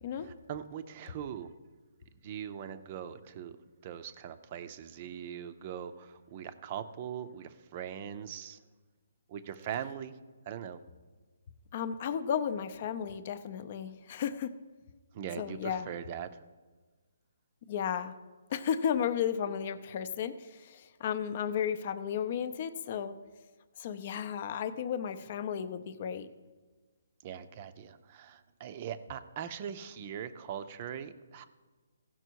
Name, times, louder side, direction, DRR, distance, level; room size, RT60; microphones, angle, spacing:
voice 1, 0.2-1.5 2.2-3.6 3.8-8.6 9.3-10.2 10.5-10.8 15.1-16.4 27.2-31.4, right 9 dB, 30° right, 11 dB, 0.6 m, -41 dB
voice 2, 11.7-14.5 15.4-15.9 17.7-18.1 18.5-23.2 23.8-26.3, left 8 dB, 35° left, 12 dB, 0.6 m, -34 dB
15.5 x 6.0 x 4.6 m, 1.3 s
hypercardioid pair, 165°, 0 cm